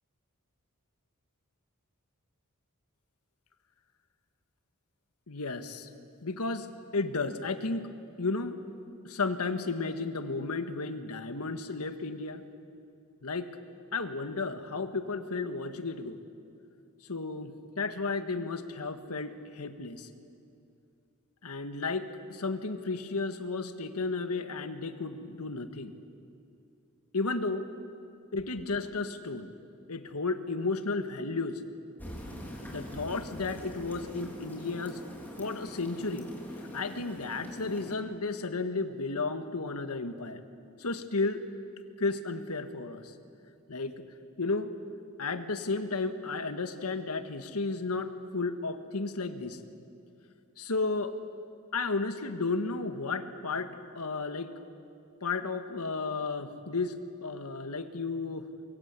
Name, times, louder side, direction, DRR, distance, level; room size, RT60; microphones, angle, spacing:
voice 1, 5.3-5.9 6.2-6.7 6.9-7.9 8.2-8.6 9.0-12.4 13.2-13.5 13.9-16.2 17.1-20.1 21.4-25.9 27.1-27.7 28.3-29.5 29.9-31.6 32.6-35.0 35.4-36.3 36.7-40.4 40.8-41.4 42.0-43.1 43.7-44.0 44.4-44.7 45.2-49.6 50.6-51.1 51.7-54.5 55.2-58.5, left 3 dB, 90° left, 9 dB, 1.6 m, -33 dB
sound 1, 32.0-38.0, equal, 10° left, 3.7 m, -43 dB
24.5 x 23.0 x 8.3 m, 2.6 s
head